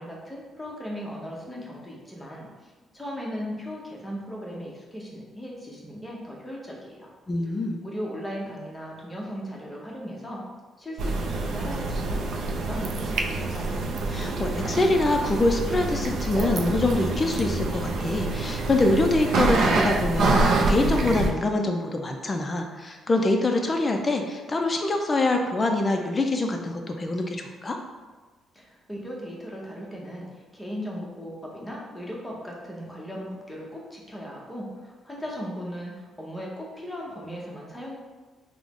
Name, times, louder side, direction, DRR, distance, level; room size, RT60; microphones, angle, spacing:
voice 1, 0.0-7.1 7.8-10.4 10.8-12.2 12.5-13.8 28.5-38.0, equal, 10° left, -3 dB, 0.8 m, -37 dB
voice 2, 7.3-7.8 14.1-27.8, left 2 dB, 25° left, 3 dB, 0.3 m, -25 dB
sound 1, 11.0-21.3, right 3 dB, 70° right, 0.3 m, -26 dB
3.5 x 2.0 x 3.5 m, 1.3 s
cardioid pair, 110°, 0 cm